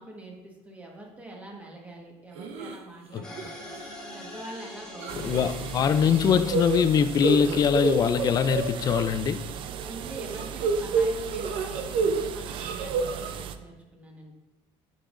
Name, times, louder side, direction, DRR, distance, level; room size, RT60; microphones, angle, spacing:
voice 1, 0.0-3.6 4.1-5.7 9.6-14.3, right 1 dB, 15° right, 1.4 m, -44 dB
sound 1, 2.4-2.8 3.2-3.5 3.7-3.8 5.0-5.6 6.0-9.0 10.2-12.2 12.5-13.3, right 5 dB, 70° right, 0.8 m, -29 dB
sound 2, 3.2-9.8, left 1 dB, 5° left, 1.5 m, -45 dB
sound 3, 5.1-13.6, right 9 dB, 50° right, 0.4 m, -38 dB
voice 2, 5.2-9.4, left 7 dB, 35° left, 0.3 m, -23 dB
9.9 x 5.5 x 2.5 m
cardioid pair, 135°, 11 cm